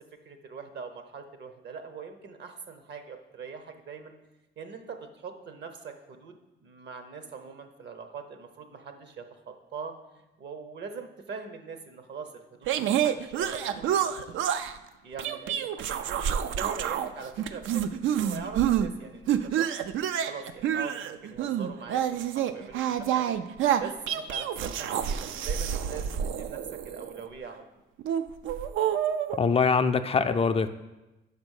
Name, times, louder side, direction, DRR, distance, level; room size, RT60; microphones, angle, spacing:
voice 1, 0.2-4.1 4.6-10.0 10.4-14.5 15.0-16.2 16.5-19.7 20.2-23.4 23.7-27.6, right 5 dB, 60° right, 7 dB, 0.9 m, -42 dB
sound 1, 12.7-14.8 15.2-17.1 17.4-18.9 19.3-27.2 28.0-29.4, right 9 dB, 80° right, 0.4 m, -28 dB
voice 2, 29.4-30.7, left 5 dB, 30° left, 8 dB, 0.3 m, -23 dB
5.1 x 5.1 x 6.4 m, 1.0 s
cardioid pair, 90°, 20 cm